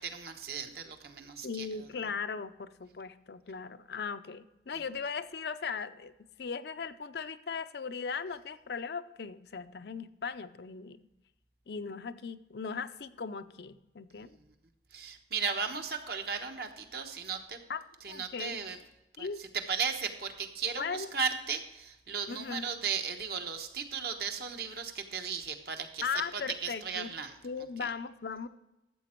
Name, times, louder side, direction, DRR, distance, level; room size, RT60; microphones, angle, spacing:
voice 1, 0.0-1.7 4.7-4.8 14.2-14.4 14.9-17.6 18.0-18.8 19.2-26.0 26.3-27.3 27.8-27.9, right 6 dB, 55° right, 5 dB, 1.1 m, -36 dB
voice 2, 1.4-6.1 6.4-11.0 11.7-14.3 17.7-17.8 18.1-18.6 19.2-19.4 20.8-21.1 22.3-22.8 26.0-27.1 27.4-28.5, left 5 dB, 60° left, 11 dB, 0.5 m, -38 dB
13.0 x 7.7 x 4.4 m, 0.97 s
head